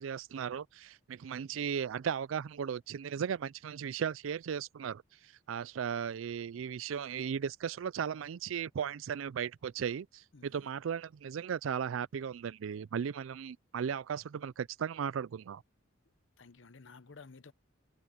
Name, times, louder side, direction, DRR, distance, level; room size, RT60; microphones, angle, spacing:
voice 1, 0.0-5.0 5.5-15.6, right 7 dB, 85° right, 0.4 m, -36 dB
voice 2, 10.3-10.7 16.4-17.5, left 4 dB, 70° left, 0.9 m, -53 dB
head